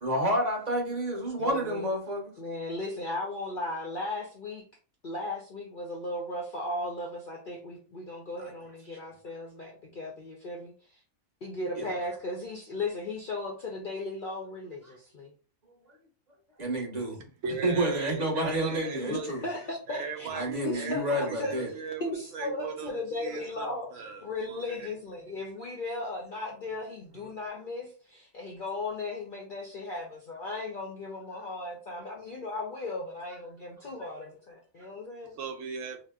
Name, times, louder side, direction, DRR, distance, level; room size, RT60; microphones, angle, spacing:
voice 1, 0.0-2.3 8.4-8.5 11.8-11.9 16.6-17.2 17.6-19.4 20.3-21.7, right 1 dB, 35° right, 0 dB, 0.9 m, -29 dB
voice 2, 1.4-1.9 2.4-4.6 5.0-11.0 11.4-15.3 19.0-20.3 20.6-21.6 22.0-23.9 24.2-35.3, left 2 dB, 55° left, -1 dB, 0.6 m, -36 dB
voice 3, 17.4-19.3 19.9-22.0 22.3-22.9 23.2-24.9 35.4-36.0, right 5 dB, 70° right, 3 dB, 0.9 m, -38 dB
2.8 x 2.1 x 3.4 m, 0.38 s
omnidirectional pair, 1.5 m